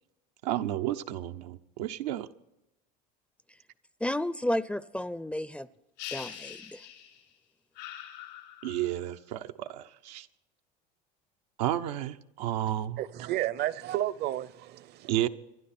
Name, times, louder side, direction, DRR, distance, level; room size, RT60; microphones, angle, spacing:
voice 1, 0.4-2.3 8.6-10.3 11.6-13.0 15.1-15.3, right 13 dB, 85° right, 0.7 m, -31 dB
voice 2, 4.0-5.7 6.1-6.9, left 1 dB, 5° left, 0.5 m, -32 dB
sound 1, 6.0-7.3 7.8-9.0, left 11 dB, 85° left, 4.5 m, -43 dB
voice 3, 13.0-15.1, right 13 dB, 50° right, 0.7 m, -32 dB
26.5 x 11.5 x 4.3 m
supercardioid pair, 95°, 21 cm